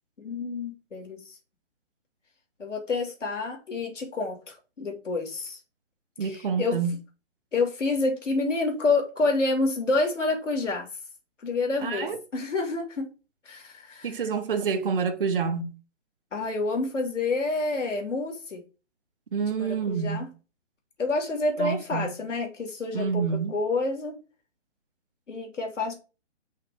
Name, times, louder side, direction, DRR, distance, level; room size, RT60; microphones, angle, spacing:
voice 1, 0.2-1.4 2.6-5.6 6.2-6.8 7.5-10.9 11.4-13.1 13.5-14.1 16.3-18.6 19.5-20.3 21.0-23.2 23.5-24.2 25.3-25.9, left 3 dB, 85° left, 2.5 m, -28 dB
voice 2, 6.2-6.9 11.8-12.2 14.0-15.8 19.3-20.3 21.6-22.2 22.9-23.5, right 6 dB, 50° right, 1.0 m, -28 dB
5.7 x 3.3 x 5.2 m
hypercardioid pair, 170°, 36 cm